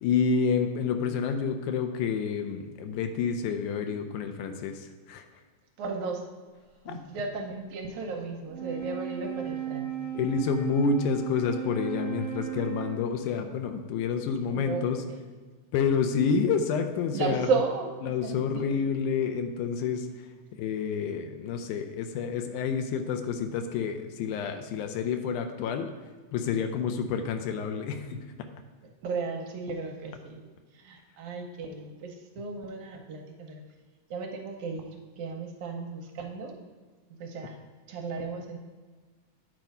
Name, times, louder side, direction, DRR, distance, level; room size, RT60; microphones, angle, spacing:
voice 1, 0.0-5.2 6.9-7.0 10.1-15.0 15.7-17.5 18.0-20.3 20.5-25.9 26.3-28.5, left 6 dB, 80° left, 6 dB, 2.0 m, -29 dB
voice 2, 5.8-6.2 6.9-10.1 14.5-15.2 17.1-17.9 18.2-18.8 29.0-30.5 30.7-33.6 34.1-36.5 37.2-37.6 37.9-38.6, right 4 dB, 75° right, 2 dB, 2.1 m, -34 dB
Wind instrument woodwind instrument, 8.4-13.2, right 9 dB, 25° right, 1.9 m, -35 dB
9.2 x 4.5 x 5.3 m, 1.4 s
omnidirectional pair, 3.7 m